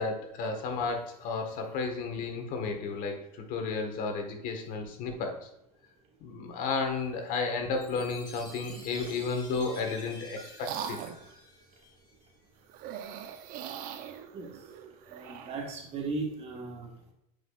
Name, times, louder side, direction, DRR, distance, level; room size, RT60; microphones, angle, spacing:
voice 1, 0.0-5.4 6.2-11.0, left 4 dB, 50° left, 4 dB, 1.5 m, -33 dB
Chime, 7.7-12.3, left 1 dB, 25° left, 2.2 m, -50 dB
sound 1, 8.6-9.2 9.9-11.3 12.7-15.7, right 9 dB, 50° right, 0.8 m, -42 dB
voice 2, 15.1-17.1, right 3 dB, 35° right, 2 dB, 1.5 m, -37 dB
9.5 x 4.9 x 2.4 m, 0.83 s
supercardioid pair, 120°, 18 cm